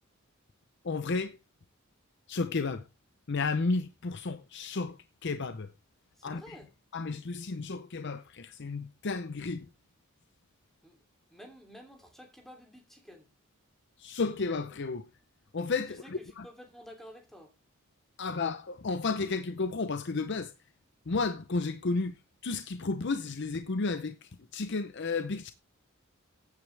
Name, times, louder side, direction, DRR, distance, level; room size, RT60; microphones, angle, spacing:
voice 1, 0.8-1.4 2.3-2.8 3.3-5.0 5.2-5.7 6.2-6.6 6.9-9.6 14.0-15.0 15.5-16.5 18.2-20.5 21.1-22.1 22.4-25.5, left 3 dB, 55° left, 0.7 m, -32 dB
voice 2, 6.2-6.7 10.8-11.0 11.3-13.3 15.9-17.5, equal, ahead, 2.9 m, -51 dB
15.5 x 9.4 x 3.3 m
head